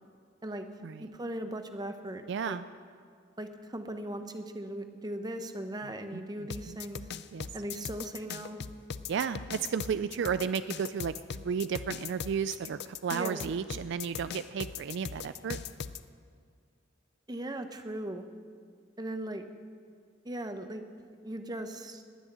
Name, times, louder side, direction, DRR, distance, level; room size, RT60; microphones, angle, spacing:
voice 1, 1.0-2.6 3.4-7.1 7.5-8.6 13.1-13.5 17.3-18.2 19.0-19.4 20.2-20.8 21.2-22.0, right 1 dB, 20° right, 7 dB, 0.9 m, -38 dB
voice 2, 2.3-2.6 5.8-6.8 7.3-7.5 9.1-15.6, right 6 dB, 60° right, 13 dB, 0.4 m, -33 dB
sound 1, 6.5-16.0, left 7 dB, 55° left, 0.5 m, -39 dB
18.5 x 6.4 x 10.0 m, 2.1 s
head